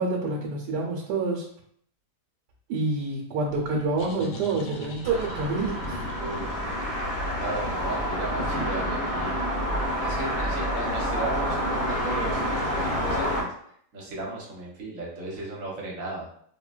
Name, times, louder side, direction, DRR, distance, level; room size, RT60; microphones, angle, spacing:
voice 1, 0.0-1.4 2.7-6.0, right 3 dB, 85° right, -1 dB, 1.2 m, -27 dB
sound 1, 3.5-9.0, left 1 dB, 70° left, 0.8 m, -42 dB
sound 2, 5.0-13.4, equal, 35° left, 0.6 m, -28 dB
voice 2, 6.2-6.7 7.4-9.4 10.0-13.5 13.9-16.3, right 2 dB, 55° right, -3 dB, 1.2 m, -35 dB
3.7 x 2.2 x 2.3 m, 0.64 s
omnidirectional pair, 1.8 m